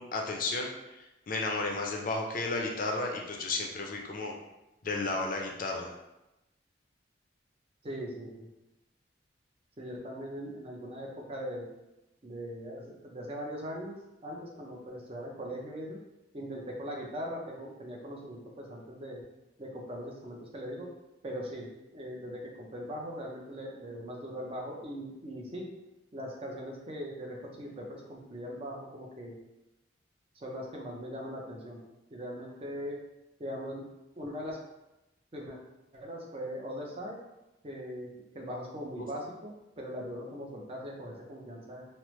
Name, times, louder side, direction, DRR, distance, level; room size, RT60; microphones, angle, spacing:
voice 1, 0.0-4.4 4.8-5.9 39.0-39.1, left 3 dB, 45° left, 1 dB, 0.4 m, -33 dB
voice 2, 7.8-8.5 9.8-11.7 12.2-14.0 14.2-16.0 16.3-19.2 19.6-20.9 21.2-25.7 26.1-29.4 30.4-31.8 32.1-33.0 33.4-33.8 34.2-34.6 35.3-35.6 35.9-37.2 37.6-41.8, equal, 30° right, -1 dB, 0.5 m, -40 dB
3.1 x 2.0 x 3.0 m, 0.96 s
head